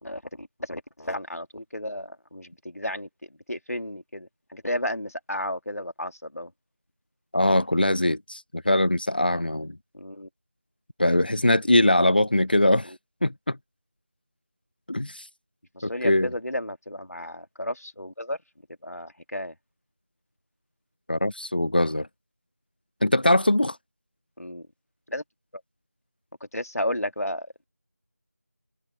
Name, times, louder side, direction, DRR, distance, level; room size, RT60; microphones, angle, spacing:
voice 1, 0.0-6.5 9.9-10.3 12.8-13.0 15.7-18.4 18.8-19.6 24.4-24.7 25.1-25.2 26.5-27.7, left 1 dB, 75° left, 2.3 m, -33 dB
voice 2, 7.3-9.8 11.0-12.9 13.2-13.6 14.9-15.3 15.8-16.3 21.1-22.1 23.0-23.8, left 1 dB, 35° left, 0.9 m, -22 dB
figure-of-eight pair, 175°, 8 cm